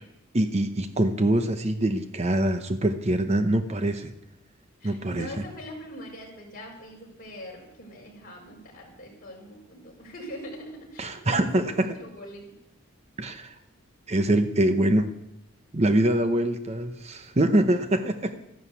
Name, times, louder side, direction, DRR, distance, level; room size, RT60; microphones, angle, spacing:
voice 1, 0.3-4.1 4.8-5.3 11.0-12.0 13.2-13.5 14.1-15.1 15.7-18.3, right 1 dB, 30° right, 8 dB, 0.8 m, -24 dB
voice 2, 4.8-12.5 18.2-18.3, equal, 45° left, -1 dB, 5.3 m, -42 dB
14.0 x 11.0 x 8.3 m, 0.82 s
head